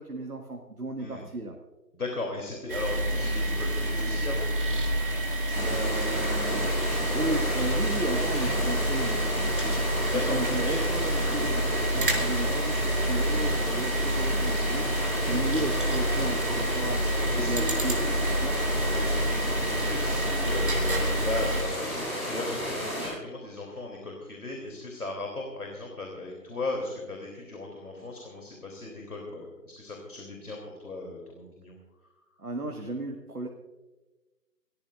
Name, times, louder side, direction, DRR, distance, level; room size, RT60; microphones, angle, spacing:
voice 1, 0.0-1.6 5.5-17.2 17.5-18.0 18.4-18.5 32.4-33.5, right 2 dB, 65° right, 3 dB, 1.8 m, -35 dB
voice 2, 1.9-4.5 10.1-10.4 10.6-10.8 12.1-12.3 14.2-14.8 17.2-18.2 18.9-31.8, left 2 dB, 60° left, 0 dB, 3.2 m, -37 dB
sound 1, 2.7-21.6, right 1 dB, 30° right, 1.7 m, -28 dB
sound 2, 5.5-23.1, equal, ahead, 2.3 m, -33 dB
29.5 x 14.0 x 2.5 m, 1.2 s
figure-of-eight pair, 155°, 49 cm